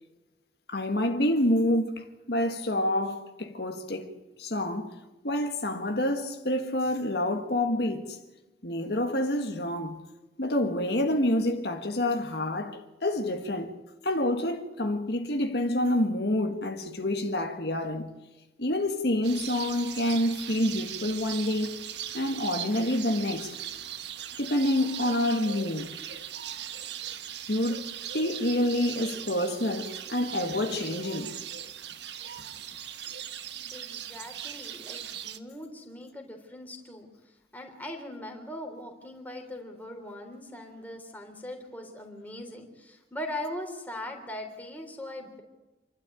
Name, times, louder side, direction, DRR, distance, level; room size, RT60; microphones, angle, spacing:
voice 1, 0.7-4.1 4.4-4.9 5.2-8.2 8.6-10.0 10.4-13.7 14.0-18.1 18.6-21.8 22.1-23.5 24.4-25.9 27.5-27.8 28.1-31.3, left 1 dB, 60° left, 1.7 m, -28 dB
sound 1, 19.2-35.4, right 9 dB, 70° right, 1.3 m, -39 dB
voice 2, 33.7-45.4, left 1 dB, 10° left, 3.5 m, -40 dB
27.5 x 12.5 x 9.2 m
head